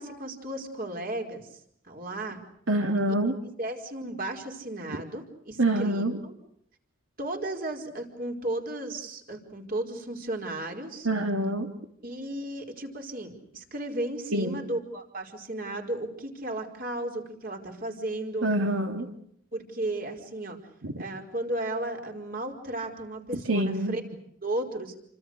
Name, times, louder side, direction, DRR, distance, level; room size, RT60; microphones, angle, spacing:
voice 1, 0.0-1.5 1.8-2.4 3.4-6.3 7.2-11.1 12.0-18.5 19.5-20.6 21.0-24.0 24.4-24.9, right 1 dB, 45° right, 3 dB, 4.9 m, -34 dB
voice 2, 2.7-3.4 5.6-6.1 11.0-11.7 14.3-14.6 18.4-19.1 20.8-20.9 23.5-24.0, right 1 dB, 80° right, 4 dB, 2.5 m, -26 dB
29.0 x 26.0 x 6.6 m, 0.70 s
head